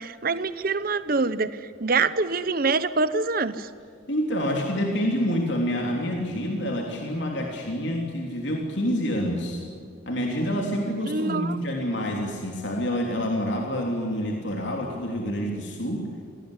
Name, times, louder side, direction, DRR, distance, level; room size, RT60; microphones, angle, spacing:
voice 1, 0.0-1.5 1.8-3.7 11.1-11.6, right 4 dB, 45° right, 13 dB, 0.9 m, -25 dB
voice 2, 4.1-9.6 10.1-16.1, equal, 65° left, 1 dB, 3.2 m, -27 dB
27.5 x 18.5 x 9.9 m, 2.3 s
head